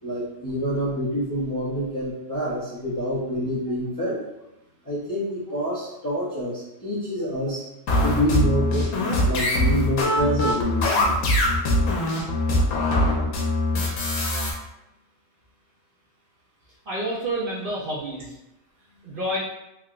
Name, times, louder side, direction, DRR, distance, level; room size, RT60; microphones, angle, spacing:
voice 1, 0.0-4.2 4.8-7.7 8.0-11.2, equal, 25° left, -9 dB, 0.4 m, -27 dB
sound 1, 7.9-14.5, left 1 dB, 70° left, 1.1 m, -22 dB
voice 2, 16.9-18.4 19.0-19.4, right 1 dB, 55° right, -6 dB, 0.6 m, -28 dB
3.3 x 2.8 x 2.4 m, 0.91 s
omnidirectional pair, 1.4 m